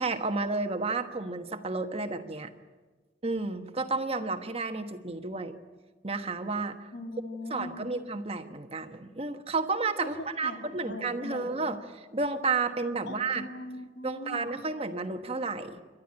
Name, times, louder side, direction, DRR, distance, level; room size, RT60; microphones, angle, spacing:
voice 1, 0.0-2.5 3.2-5.6 6.0-6.8 7.5-11.8 12.1-13.5 14.0-15.8, right 3 dB, 35° right, 7 dB, 1.2 m, -31 dB
voice 2, 6.9-7.9 10.0-10.1 10.4-11.7 13.1-14.5, left 1 dB, 80° left, 3 dB, 3.1 m, -40 dB
28.5 x 12.5 x 8.8 m, 1.3 s
head